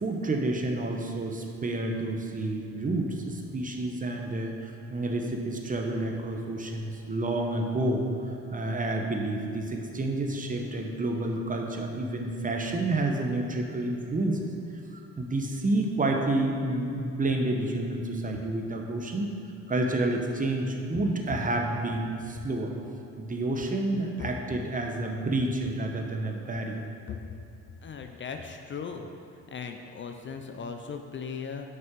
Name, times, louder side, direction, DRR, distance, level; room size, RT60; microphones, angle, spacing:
voice 1, 0.0-8.0 8.5-14.5 15.2-19.4 19.7-22.7 23.2-26.8, right 2 dB, 25° right, 2 dB, 0.9 m, -29 dB
voice 2, 27.8-29.1 29.5-31.7, left 6 dB, 40° left, 5 dB, 0.5 m, -38 dB
6.0 x 5.9 x 4.6 m, 2.7 s
cardioid pair, 90°, 30 cm